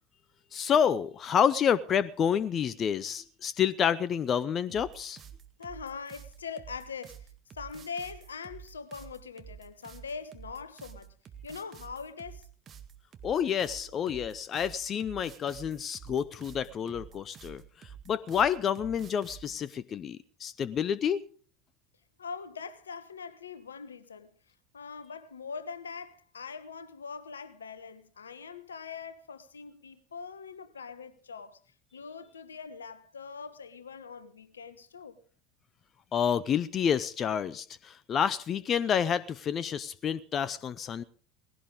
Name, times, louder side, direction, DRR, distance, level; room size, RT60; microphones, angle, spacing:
voice 1, 0.5-5.2 13.2-21.2 36.1-41.0, left 8 dB, 35° left, 0.6 m, -29 dB
sound 1, 4.7-19.6, right 8 dB, 35° right, 1.8 m, -49 dB
voice 2, 5.6-7.3 7.5-11.1 11.4-12.5 22.2-24.3 24.7-31.6 31.9-35.2, left 5 dB, 80° left, 1.2 m, -42 dB
19.0 x 16.0 x 3.7 m
figure-of-eight pair, 75°, 0 cm